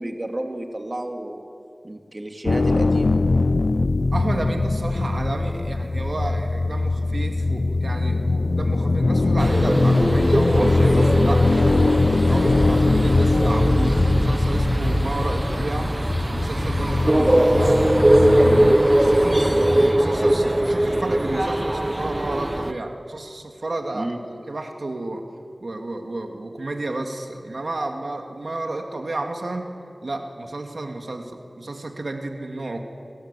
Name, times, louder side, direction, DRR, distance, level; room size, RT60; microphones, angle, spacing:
voice 1, 0.0-1.5 1.8-3.2 23.9-24.2, right 1 dB, 40° right, 4 dB, 2.5 m, -31 dB
sound 1, 2.5-18.7, left 3 dB, 75° left, 0.6 m, -21 dB
voice 2, 4.1-12.0 12.3-15.9 16.3-17.9 18.3-24.1 24.5-25.2 25.6-29.7 30.0-32.8, right 2 dB, 75° right, 3 dB, 2.3 m, -31 dB
sound 2, 9.4-22.7, right 1 dB, 25° right, 1.0 m, -21 dB
30.0 x 24.0 x 8.3 m, 2.4 s
wide cardioid pair, 60°, 0 cm